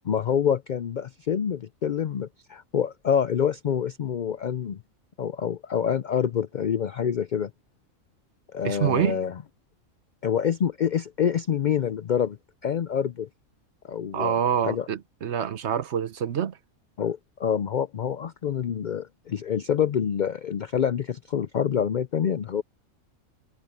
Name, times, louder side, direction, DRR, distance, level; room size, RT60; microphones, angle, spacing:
voice 1, 0.0-4.8 5.2-7.5 8.5-9.3 10.2-12.4 12.6-13.3 13.8-14.3 14.6-14.9 17.0-22.6, left 8 dB, 80° left, 0.4 m, -26 dB
voice 2, 8.6-9.2 14.1-16.6, right 9 dB, 60° right, 1.0 m, -26 dB
omnidirectional pair, 1.4 m